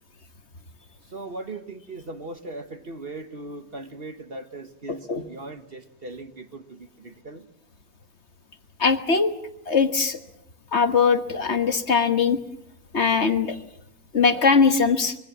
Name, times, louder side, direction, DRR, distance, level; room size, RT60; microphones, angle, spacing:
voice 1, 1.1-7.5, right 2 dB, 40° right, 9 dB, 1.5 m, -39 dB
voice 2, 4.9-5.3 8.8-9.3 9.7-10.2 10.7-12.4 12.9-13.6 14.1-15.1, left 5 dB, 50° left, 9 dB, 1.5 m, -21 dB
25.5 x 23.5 x 7.4 m, 0.78 s
omnidirectional pair, 1.6 m